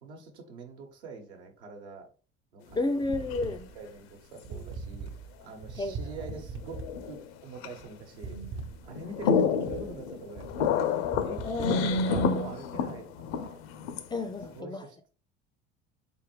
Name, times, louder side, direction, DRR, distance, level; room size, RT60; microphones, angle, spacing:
voice 1, 0.0-2.1 2.5-2.8 3.7-13.6 14.5-15.2, right 4 dB, 75° right, 1.1 m, -44 dB
sound 1, 2.7-3.5 4.4-4.5 6.3-7.3 7.6-7.8 8.3-8.6 8.9-14.6, left 5 dB, 65° left, 0.6 m, -29 dB
voice 2, 2.7-3.7 5.8-6.0 6.3-6.4 11.4-12.0 14.1-14.8, left 2 dB, 15° left, 0.4 m, -31 dB
sound 2, 2.7-12.3, right 4 dB, 35° right, 0.5 m, -41 dB
4.4 x 3.5 x 3.1 m
figure-of-eight pair, 65°, 34 cm